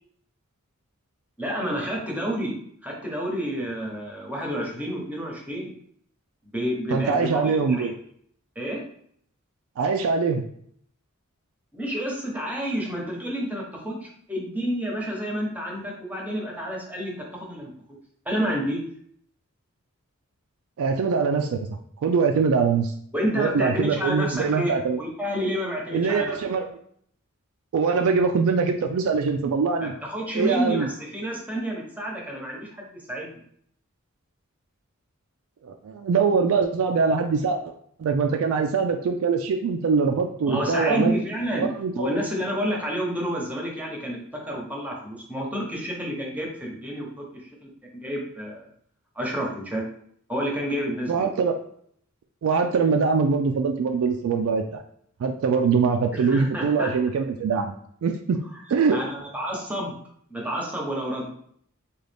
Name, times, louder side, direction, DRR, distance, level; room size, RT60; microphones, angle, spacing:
voice 1, 1.4-2.5 2.8-5.7 6.5-7.9 8.6-8.8 11.7-17.7 18.3-18.8 23.1-26.3 29.8-33.3 40.5-41.7 41.9-47.1 47.4-48.7 49.2-49.8 50.3-51.3 56.1-56.9 58.9-59.9 60.3-61.3, equal, 5° right, -2 dB, 0.8 m, -29 dB
voice 2, 6.9-7.9 9.8-10.4 20.8-22.9 23.4-25.0 25.9-26.7 27.7-29.9 30.3-30.9 35.6-37.7 38.0-41.2 41.6-42.2 51.1-51.6 52.4-54.8 55.2-57.7 58.0-58.4 58.7-59.0, right 5 dB, 70° right, 4 dB, 0.3 m, -23 dB
3.8 x 2.3 x 3.4 m, 0.64 s
head